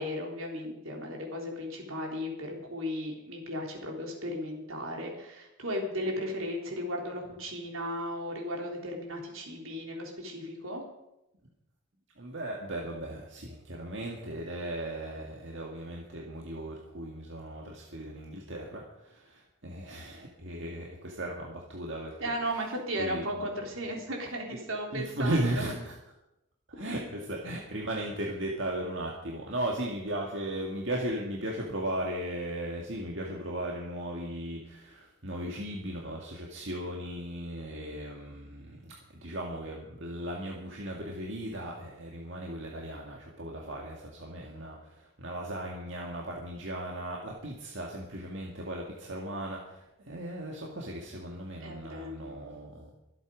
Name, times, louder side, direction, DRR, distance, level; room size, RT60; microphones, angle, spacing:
voice 1, 0.0-10.8 22.2-25.6 51.6-52.3, equal, 75° right, 0 dB, 3.8 m, -35 dB
voice 2, 12.2-22.3 23.0-23.4 24.9-25.9 26.8-52.9, right 1 dB, 60° right, -1 dB, 2.0 m, -36 dB
24.0 x 8.4 x 5.1 m, 0.90 s
head